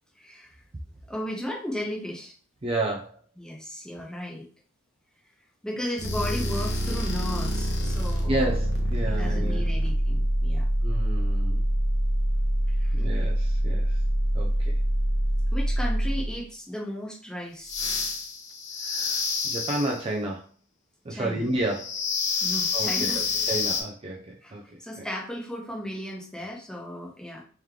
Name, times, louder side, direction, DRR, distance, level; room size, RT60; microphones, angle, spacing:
voice 1, 0.2-0.6 1.1-2.3 3.4-4.5 5.6-8.5 9.0-10.7 12.8-13.0 15.5-17.7 21.1-21.4 22.4-23.2 24.4-27.4, equal, 5° left, -2 dB, 0.9 m, -35 dB
voice 2, 2.6-3.1 8.3-9.6 10.8-11.6 12.9-14.0 14.3-14.8 18.8-20.5 21.0-22.0 22.7-24.6 25.0-25.1, right 1 dB, 25° right, -1 dB, 0.5 m, -31 dB
sound 1, 6.0-16.4 17.6-20.0 21.7-23.8, equal, 55° left, 0.8 m, -26 dB
3.2 x 3.0 x 3.6 m, 0.40 s
head